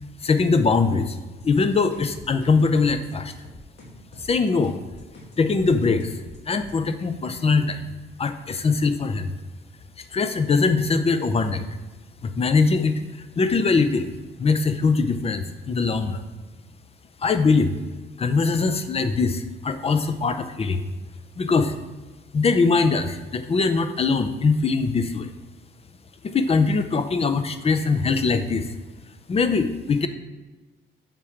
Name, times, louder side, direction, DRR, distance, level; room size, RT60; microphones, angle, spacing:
voice 1, 0.2-1.2 1.4-3.3 4.3-4.8 5.4-6.1 6.5-7.8 8.2-9.3 10.1-11.6 12.2-13.0 13.4-14.1 14.4-16.2 17.2-17.7 18.2-20.9 21.4-21.7 22.3-25.3 26.2-28.7 29.3-30.1, left 4 dB, 30° left, 9 dB, 0.5 m, -22 dB
sound 1, 1.4-6.8, left 1 dB, 55° left, 1.6 m, -45 dB
6.8 x 3.7 x 4.4 m, 1.2 s
cardioid pair, 90°, 20 cm